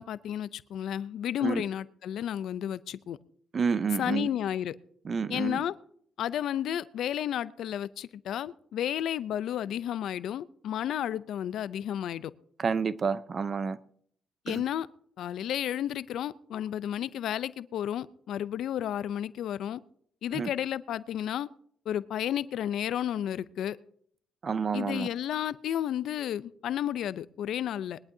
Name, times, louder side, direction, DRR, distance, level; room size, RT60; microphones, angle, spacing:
voice 1, 0.0-3.2 4.0-4.8 5.3-5.7 6.2-12.3 14.4-14.9 15.2-19.8 20.2-21.5 21.9-23.8 24.7-28.0, left 10 dB, 75° left, 0.5 m, -32 dB
voice 2, 3.5-4.3 5.0-5.6 12.6-13.8 14.5-14.6 20.3-20.5 24.4-25.1, right 5 dB, 45° right, 0.7 m, -29 dB
21.0 x 11.5 x 2.8 m
cardioid pair, 90°, 0 cm